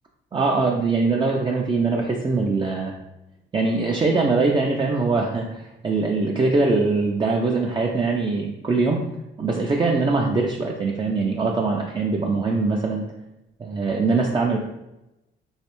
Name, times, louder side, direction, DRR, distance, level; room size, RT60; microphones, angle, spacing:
voice 1, 0.3-2.9 3.5-9.0 9.4-13.0 13.6-14.6, right 3 dB, 25° right, -1 dB, 0.5 m, -22 dB
3.2 x 3.1 x 3.0 m, 0.92 s
cardioid pair, 90°, 20 cm